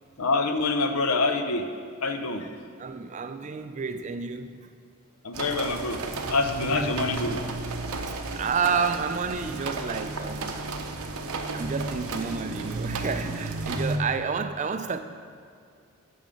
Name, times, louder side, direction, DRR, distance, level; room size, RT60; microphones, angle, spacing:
voice 1, 0.2-1.7 2.0-2.5 5.2-6.0 6.3-7.4, left 3 dB, 80° left, 7 dB, 0.7 m, -26 dB
voice 2, 2.4-4.6 6.7-6.9 8.3-10.6 11.5-15.0, right 5 dB, 35° right, 10 dB, 0.3 m, -30 dB
sound 1, 5.3-14.0, right 3 dB, 80° right, 0.8 m, -33 dB
8.8 x 5.5 x 6.3 m, 2.3 s
head